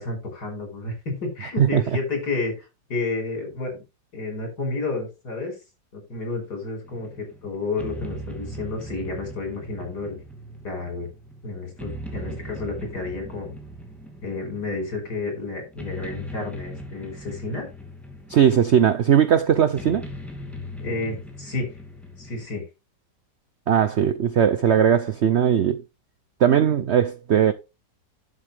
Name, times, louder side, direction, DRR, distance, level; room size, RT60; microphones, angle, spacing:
voice 1, 0.0-3.8 4.1-5.6 5.9-10.2 10.6-11.1 11.4-13.5 14.2-17.7 20.8-21.7 22.2-22.6, left 3 dB, 60° left, 5.8 m, -31 dB
sound 1, 6.8-22.5, equal, ahead, 2.3 m, -39 dB
voice 2, 18.3-20.1 23.7-25.8 26.4-27.5, right 9 dB, 80° right, 0.6 m, -19 dB
11.5 x 7.4 x 3.4 m
omnidirectional pair, 2.0 m